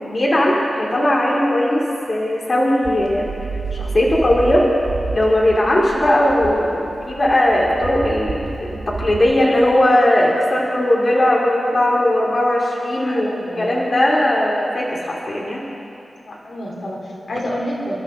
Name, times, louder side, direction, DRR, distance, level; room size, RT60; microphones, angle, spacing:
voice 1, 0.0-3.3 3.7-4.7 5.1-13.3 13.6-15.7, left 1 dB, 40° left, -4 dB, 2.6 m, -18 dB
sound 1, 2.8-9.8, right 4 dB, 90° right, 1.5 m, -30 dB
voice 2, 13.0-13.7 16.3-18.0, equal, 65° left, -3 dB, 2.9 m, -28 dB
29.0 x 12.5 x 3.7 m, 2.7 s
wide cardioid pair, 120°, 0 cm